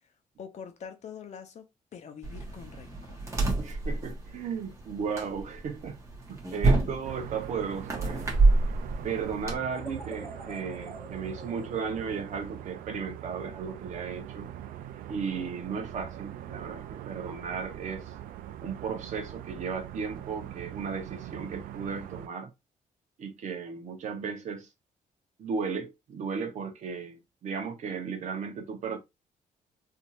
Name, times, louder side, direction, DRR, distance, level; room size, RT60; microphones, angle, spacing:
voice 1, 0.4-3.3, left 7 dB, 55° left, 0.8 m, -45 dB
sound 1, 2.2-9.6, right 3 dB, 20° right, 1.1 m, -28 dB
voice 2, 3.6-6.0 6.3-8.2 9.0-14.5 15.1-18.1 18.6-22.5 23.2-24.7 25.4-29.0, right 6 dB, 60° right, 1.0 m, -35 dB
sound 2, 7.0-22.3, right 11 dB, 85° right, 0.4 m, -42 dB
sound 3, 9.7-12.9, left 1 dB, 20° left, 0.9 m, -47 dB
3.5 x 2.8 x 2.4 m
cardioid pair, 120°, 14 cm